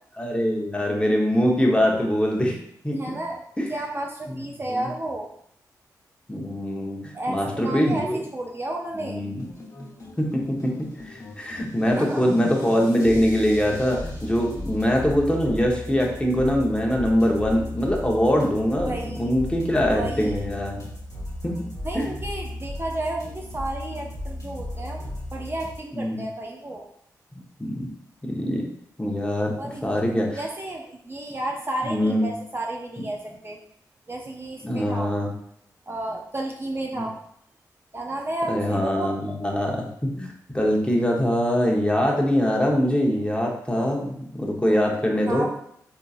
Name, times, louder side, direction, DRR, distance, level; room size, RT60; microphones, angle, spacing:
voice 1, 0.2-2.6 2.8-3.0 3.6-3.7 4.3-4.4 4.7-4.9 6.3-8.2 8.9-9.4 10.2-10.7 11.0-20.8 21.9-22.0 25.9-26.2 27.6-27.9 28.2-28.7 29.0-29.5 29.8-30.4 31.8-32.3 34.6-35.3 36.9-37.1 38.5-40.3 40.5-45.5, equal, 15° left, -1 dB, 1.0 m, -23 dB
voice 2, 2.9-3.4 3.7-5.3 7.1-9.2 12.0-12.2 12.6-12.7 18.8-19.3 20.0-20.3 21.8-25.0 25.3-26.9 29.6-29.8 30.4-33.6 34.1-35.1 35.9-37.2 37.9-39.1 45.3-45.6, right 1 dB, 30° right, 0 dB, 0.5 m, -32 dB
sound 1, 9.2-25.8, left 1 dB, 50° left, 1.2 m, -36 dB
3.6 x 2.7 x 2.5 m, 0.69 s
supercardioid pair, 40°, 7 cm